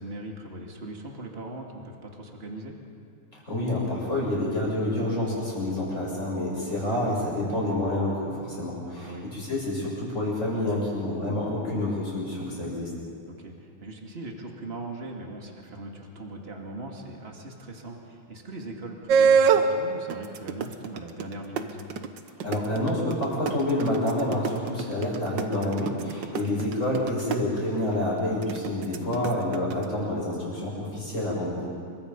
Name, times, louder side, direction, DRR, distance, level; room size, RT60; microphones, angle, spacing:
voice 1, 0.0-2.8 6.9-7.2 9.1-9.2 13.2-21.8 26.2-26.7 29.1-29.3, right 2 dB, 30° right, 1 dB, 2.6 m, -40 dB
voice 2, 3.3-12.9 22.4-31.7, left 1 dB, 35° left, -5 dB, 8.1 m, -28 dB
sound 1, 19.1-19.7 20.1-27.4 28.4-29.8, right 6 dB, 65° right, 1.7 m, -23 dB
29.0 x 24.5 x 5.5 m, 2.3 s
omnidirectional pair, 2.3 m